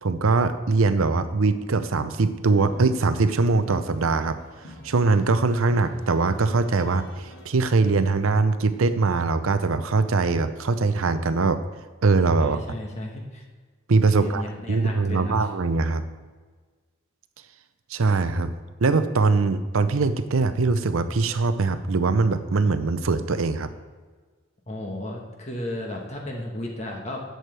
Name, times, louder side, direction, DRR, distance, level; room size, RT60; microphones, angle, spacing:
voice 1, 0.0-4.4 4.8-11.6 12.0-12.6 13.9-14.4 14.7-16.0 17.9-18.5 18.8-23.7, right 3 dB, 70° right, 11 dB, 0.6 m, -22 dB
sound 1, 2.5-8.1, left 1 dB, 65° left, 2.0 m, -47 dB
voice 2, 12.4-13.4 14.2-15.3 24.7-27.2, left 1 dB, 30° left, 0 dB, 1.2 m, -34 dB
11.0 x 7.9 x 3.3 m, 1.4 s
head